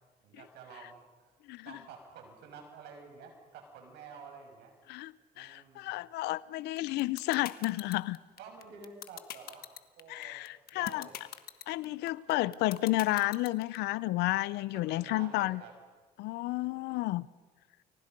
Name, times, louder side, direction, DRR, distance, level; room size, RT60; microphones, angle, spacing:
voice 1, 0.2-1.3 1.6-4.7 5.3-5.9 8.4-10.4 10.7-11.2 12.4-12.5 14.7-15.8, right 5 dB, 80° right, 6.3 m, -50 dB
voice 2, 4.9-8.2 10.1-11.1 11.7-15.6 16.2-17.3, left 18 dB, 85° left, 0.7 m, -31 dB
sound 1, 6.8-13.8, left 12 dB, 65° left, 1.4 m, -42 dB
30.0 x 23.5 x 5.3 m
cardioid pair, 110°, 17 cm